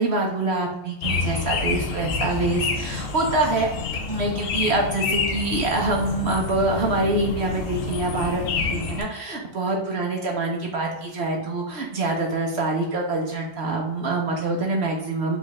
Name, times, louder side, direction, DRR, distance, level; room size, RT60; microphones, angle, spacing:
voice 1, 0.0-3.7 4.1-15.4, right 2 dB, 60° right, 0 dB, 0.7 m, -25 dB
sound 1, 1.0-9.0, left 4 dB, 70° left, 0.8 m, -28 dB
5.0 x 2.5 x 4.0 m, 0.89 s
omnidirectional pair, 2.0 m